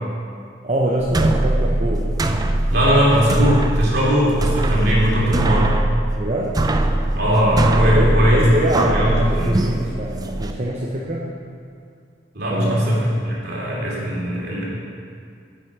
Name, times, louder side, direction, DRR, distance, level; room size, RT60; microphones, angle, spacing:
voice 1, 0.6-2.1 6.2-6.6 7.8-11.3 12.5-12.9, right 1 dB, 40° right, -4 dB, 0.8 m, -24 dB
sound 1, 1.0-10.5, right 1 dB, 20° right, 0.4 m, -21 dB
voice 2, 2.7-5.8 7.1-8.4 8.7-9.6 12.3-14.7, equal, 60° right, -4 dB, 2.7 m, -19 dB
9.8 x 7.6 x 4.9 m, 2.3 s
head